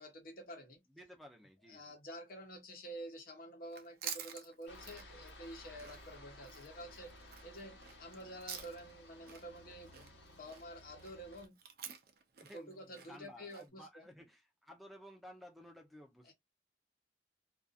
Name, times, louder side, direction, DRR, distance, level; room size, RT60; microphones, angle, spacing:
voice 1, 0.0-0.8 1.7-7.1 7.4-10.1 10.4-11.5 12.5-14.1 16.3-16.4, equal, 50° left, 0.9 m, -49 dB
voice 2, 0.9-2.0 12.4-16.3, equal, ahead, 0.7 m, -55 dB
Chewing mastication, 3.7-9.0 9.3-13.7, right 8 dB, 55° right, 0.5 m, -49 dB
Aircraft, 4.7-11.5, left 1 dB, 85° left, 1.1 m, -56 dB
2.5 x 2.5 x 2.4 m
head